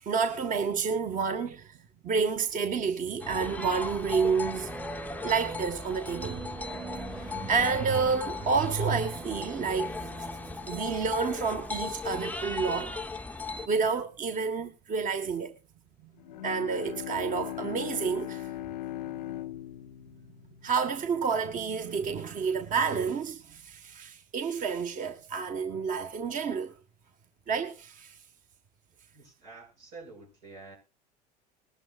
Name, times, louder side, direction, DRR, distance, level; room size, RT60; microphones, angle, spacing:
voice 1, 0.0-1.7 2.0-4.7 5.2-6.5 7.1-10.1 10.7-13.0 13.7-15.6 16.4-18.5 19.0-19.1 20.6-26.7 27.5-28.2, right 5 dB, 40° right, 1.5 m, -29 dB
sound 1, 3.2-13.7, left 3 dB, 5° left, 0.7 m, -37 dB
sound 2, 4.5-11.9, right 3 dB, 15° right, 1.1 m, -44 dB
Bowed string instrument, 16.2-21.6, left 14 dB, 90° left, 0.5 m, -39 dB
voice 2, 29.1-30.8, right 3 dB, 85° right, 7.0 m, -48 dB
20.5 x 12.0 x 2.4 m
hypercardioid pair, 80°, 21 cm